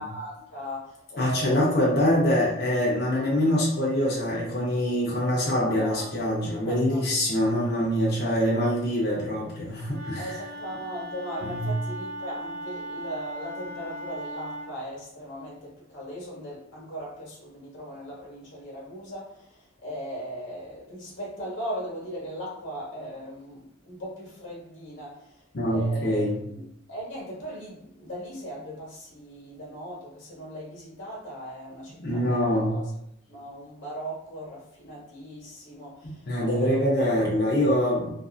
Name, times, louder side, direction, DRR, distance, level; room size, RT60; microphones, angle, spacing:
voice 1, 0.0-2.1 5.6-7.5 8.2-8.7 10.2-32.9 33.3-37.0, equal, 70° left, -5 dB, 1.1 m, -39 dB
voice 2, 1.2-10.3 11.4-11.6 25.5-26.4 32.0-32.8 36.0-38.1, equal, 50° left, -6 dB, 0.6 m, -24 dB
Wind instrument woodwind instrument, 9.9-14.7, right 1 dB, 50° right, 0.6 m, -38 dB
2.5 x 2.4 x 2.4 m, 0.77 s
head